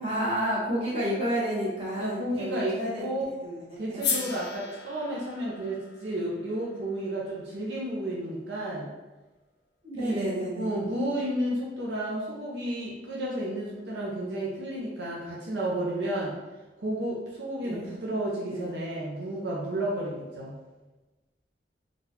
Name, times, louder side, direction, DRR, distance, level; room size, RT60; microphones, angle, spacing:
voice 1, 0.0-3.0 3.4-4.3 9.8-10.7 17.6-17.8 18.5-18.7, equal, 35° right, -8 dB, 1.2 m, -30 dB
voice 2, 2.0-3.3 3.8-8.9 9.9-16.4 16.8-20.6, right 1 dB, 75° right, -5 dB, 0.7 m, -32 dB
sound 1, 4.0-8.2, left 6 dB, 65° left, 0.5 m, -36 dB
3.8 x 2.4 x 2.8 m, 1.2 s
head